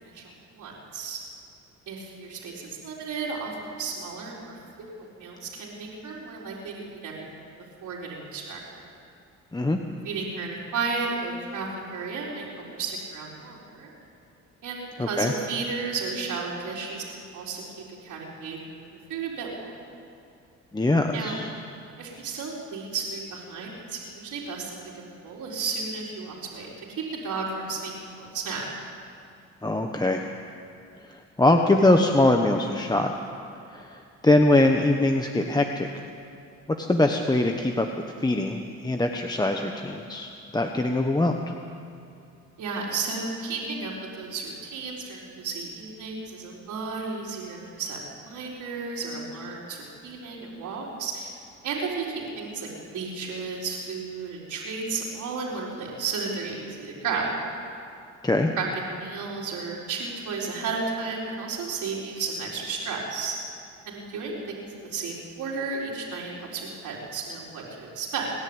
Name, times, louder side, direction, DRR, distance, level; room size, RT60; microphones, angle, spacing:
voice 1, 0.1-1.2 1.9-4.6 5.0-7.3 7.8-8.8 10.0-13.9 14.6-18.6 19.1-19.7 21.1-21.4 22.0-24.8 25.2-26.7 27.1-28.6 42.6-51.3 51.6-57.3 58.6-63.4 63.9-68.3, right 4 dB, 80° right, -6 dB, 4.2 m, -33 dB
voice 2, 15.0-15.3 20.7-21.5 29.6-30.2 31.1-33.1 33.7-33.9 34.2-35.9 36.8-37.9 38.2-41.4 58.2-58.5, left 2 dB, 15° left, 3 dB, 1.2 m, -22 dB
29.5 x 10.5 x 8.9 m, 2.5 s
cardioid pair, 90°, 30 cm